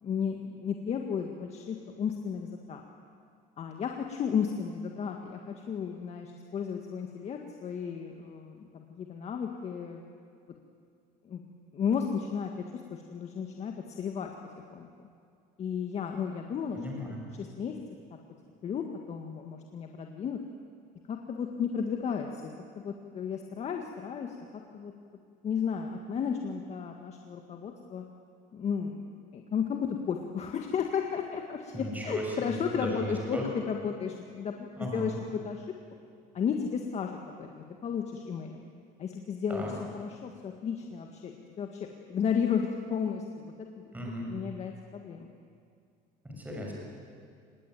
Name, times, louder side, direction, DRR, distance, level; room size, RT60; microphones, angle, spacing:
voice 1, 0.0-2.8 3.6-10.0 11.3-11.4 11.7-12.6 12.9-14.3 14.7-14.9 15.6-16.8 17.3-17.8 18.6-20.4 21.1-24.4 24.7-24.9 25.4-28.0 28.5-29.0 29.3-35.6 36.3-38.6 39.0-39.6 39.9-43.8 44.3-45.3, left 7 dB, 40° left, 3 dB, 1.9 m, -33 dB
voice 2, 16.7-17.2 31.7-33.5 34.8-35.1 39.5-39.7 43.9-44.3 46.2-46.7, equal, 10° right, -1 dB, 6.4 m, -36 dB
25.5 x 20.5 x 9.2 m, 2.3 s
cardioid pair, 130°, 16 cm